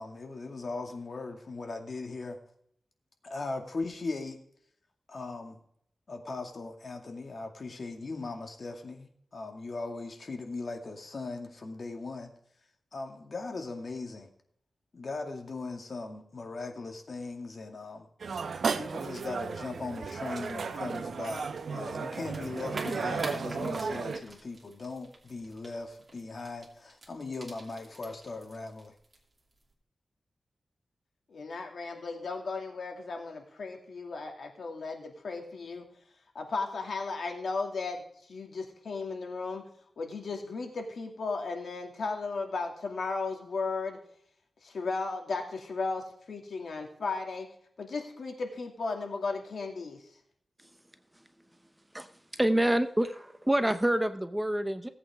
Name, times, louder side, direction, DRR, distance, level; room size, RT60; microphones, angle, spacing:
voice 1, 0.0-2.4 3.2-4.4 5.1-5.6 6.1-12.3 12.9-14.3 14.9-18.1 18.7-28.9, left 3 dB, 55° left, 3 dB, 2.2 m, -39 dB
sound 1, 18.2-24.2, right 5 dB, 75° right, 0.8 m, -34 dB
sound 2, 19.5-29.7, right 2 dB, 30° right, 2.8 m, -48 dB
voice 2, 31.3-35.8 36.3-38.0 38.3-39.6 40.0-44.0 44.6-47.5 47.8-50.0, left 4 dB, 75° left, 2 dB, 2.4 m, -35 dB
voice 3, 52.4-54.9, right 1 dB, 10° right, 9 dB, 0.8 m, -27 dB
18.0 x 8.4 x 3.6 m, 0.67 s
wide cardioid pair, 100°, 0 cm